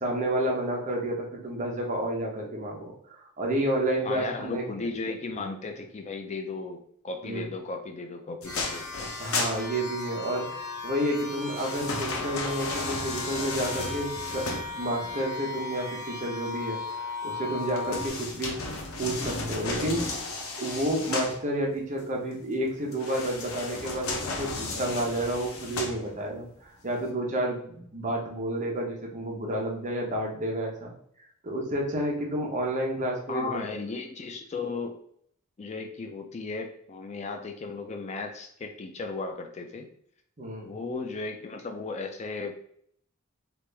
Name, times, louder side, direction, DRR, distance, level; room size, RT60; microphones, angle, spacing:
voice 1, 0.0-4.6 7.2-7.5 9.2-14.5 14.8-18.5 19.0-20.2 20.6-30.9 31.4-33.6 40.4-40.7, right 1 dB, 35° right, -1 dB, 0.8 m, -30 dB
voice 2, 4.1-8.8 33.3-35.0 35.6-39.9 40.6-42.6, left 3 dB, 35° left, 4 dB, 0.4 m, -35 dB
sound 1, 8.4-10.3 11.2-15.1 17.6-21.4 22.9-26.4 26.9-27.0, left 3 dB, 85° left, 0.7 m, -34 dB
sound 2, 8.4-18.1, left 4 dB, 15° left, 0.8 m, -37 dB
3.3 x 2.5 x 3.3 m, 0.65 s
head